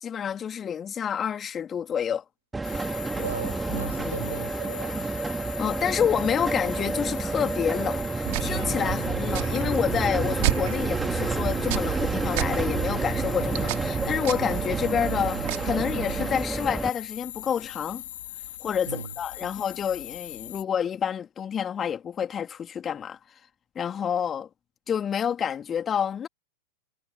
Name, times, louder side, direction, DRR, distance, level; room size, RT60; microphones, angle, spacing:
voice 1, 0.0-2.2 4.0-4.2 5.6-18.0 18.6-23.2 23.7-24.5 24.9-26.3, left 8 dB, 25° left, 3.0 m, -28 dB
sound 1, 2.5-16.9, right 3 dB, 10° right, 2.5 m, -29 dB
sound 2, 2.6-20.6, left 13 dB, 55° left, 3.1 m, -40 dB
voice 2, 3.1-5.1 18.8-19.1 19.4-19.5, right 6 dB, 70° right, 4.8 m, -37 dB
sound 3, 8.3-16.3, right 29 dB, 45° right, 4.2 m, -32 dB
figure-of-eight pair, 90°, 0 cm